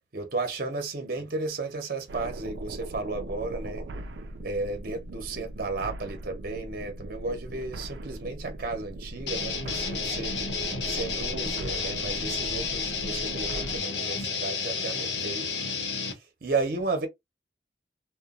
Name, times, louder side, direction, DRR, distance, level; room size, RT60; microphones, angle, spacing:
voice 1, 0.1-3.9 4.4-10.4 10.9-15.5 16.0-17.1, right 3 dB, 55° right, 0.8 m, -33 dB
sound 1, 2.1-13.8, right 1 dB, 90° right, 0.5 m, -39 dB
sound 2, 9.3-16.1, left 5 dB, 85° left, 0.8 m, -31 dB
2.9 x 2.2 x 2.4 m
head